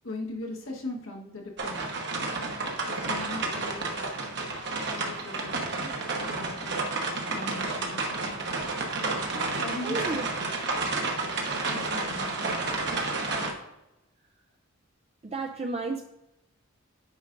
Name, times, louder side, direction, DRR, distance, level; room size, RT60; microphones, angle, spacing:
voice 1, 0.0-2.1 2.8-4.1 4.9-6.9 7.3-8.5 9.5-10.3 11.6-12.8, left 2 dB, 70° left, 0 dB, 1.3 m, -40 dB
sound 1, 1.6-13.5, right 3 dB, 60° right, 1.1 m, -31 dB
voice 2, 9.8-10.3 15.2-16.0, right 3 dB, 30° right, 3 dB, 0.4 m, -32 dB
8.8 x 4.9 x 2.6 m, 0.89 s
head